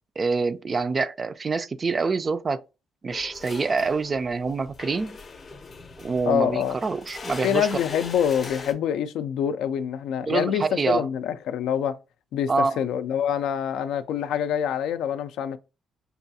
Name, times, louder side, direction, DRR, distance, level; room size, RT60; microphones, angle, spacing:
voice 1, 0.2-2.6 3.0-5.2 6.0-7.7 10.2-11.1 12.5-12.8, right 4 dB, 35° right, 0.3 m, -26 dB
sound 1, 3.1-8.7, left 3 dB, 40° left, 0.6 m, -40 dB
voice 2, 6.3-6.8 7.4-12.0 12.3-15.6, left 9 dB, 85° left, 0.3 m, -26 dB
5.3 x 2.3 x 2.6 m
cardioid pair, 90°, 0 cm